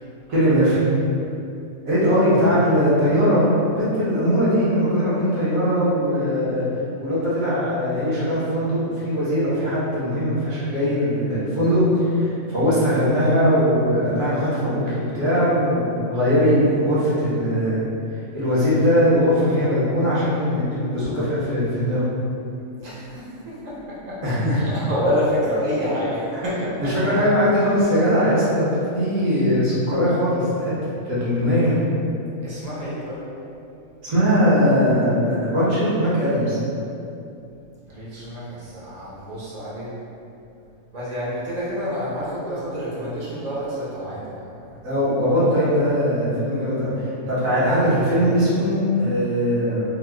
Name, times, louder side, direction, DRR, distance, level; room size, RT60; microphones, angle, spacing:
voice 1, 0.3-0.8 1.8-6.6 7.0-17.8 18.3-22.0 24.2-24.6 26.8-30.7 31.0-31.7 34.0-36.6 44.8-49.8, equal, 75° right, -10 dB, 1.5 m, -20 dB
voice 2, 22.8-24.2 24.5-26.9 32.4-33.2 37.9-40.0 40.9-44.8, equal, 35° right, -9 dB, 0.7 m, -28 dB
4.0 x 2.2 x 2.3 m, 2.7 s
omnidirectional pair, 1.5 m